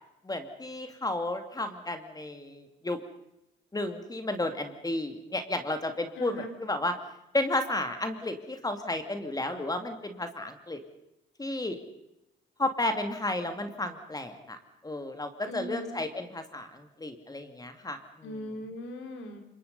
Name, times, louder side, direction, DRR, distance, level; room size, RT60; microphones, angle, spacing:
voice 1, 0.2-3.0 3.7-6.9 7.3-10.8 11.4-11.8 12.6-14.6 14.8-18.4, left 2 dB, 20° left, 7 dB, 2.6 m, -32 dB
voice 2, 6.2-6.5 15.5-16.0 18.2-19.4, equal, 80° left, 5 dB, 4.6 m, -39 dB
26.5 x 22.0 x 5.5 m, 0.85 s
cardioid pair, 90°, 20 cm